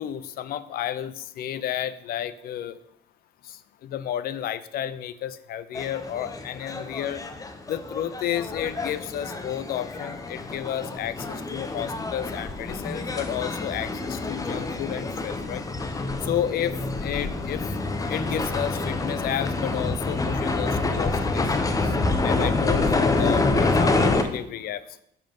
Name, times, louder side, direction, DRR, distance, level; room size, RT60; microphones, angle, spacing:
voice 1, 0.0-2.8 3.5-7.2 7.7-15.6 16.2-17.6 18.1-21.5 21.8-21.9 22.2-25.0, left 10 dB, 60° left, 15 dB, 0.5 m, -31 dB
sound 1, 5.7-24.2, left 3 dB, 20° left, 0.7 m, -27 dB
6.6 x 5.4 x 5.3 m, 0.75 s
cardioid pair, 110°, 17 cm